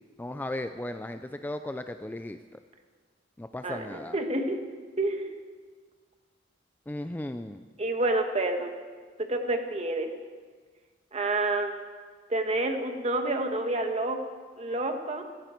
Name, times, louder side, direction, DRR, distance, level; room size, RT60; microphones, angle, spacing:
voice 1, 0.2-2.4 3.4-4.2 6.9-7.6, left 1 dB, 10° left, 8 dB, 0.4 m, -36 dB
voice 2, 3.6-4.6 5.0-5.3 7.8-8.7 9.3-10.1 11.1-11.9 12.3-14.2 14.6-15.2, right 2 dB, 35° right, 5 dB, 1.5 m, -28 dB
17.0 x 16.5 x 4.5 m, 1.5 s
head